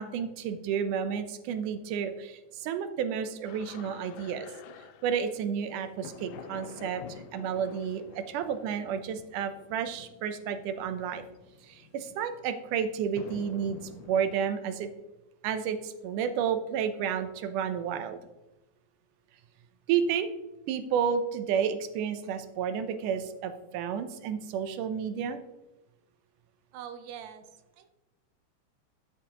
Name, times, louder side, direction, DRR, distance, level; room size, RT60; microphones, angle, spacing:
voice 1, 0.0-4.5 5.0-11.2 11.6-14.9 15.4-18.2 19.9-20.3 20.7-25.4, right 7 dB, 90° right, 9 dB, 2.3 m, -31 dB
sound 1, 3.4-14.4, left 7 dB, 85° left, 2.2 m, -49 dB
voice 2, 26.7-27.5 27.8-27.9, right 9 dB, 75° right, 9 dB, 2.0 m, -43 dB
13.0 x 7.4 x 2.9 m, 1.0 s
omnidirectional pair, 3.5 m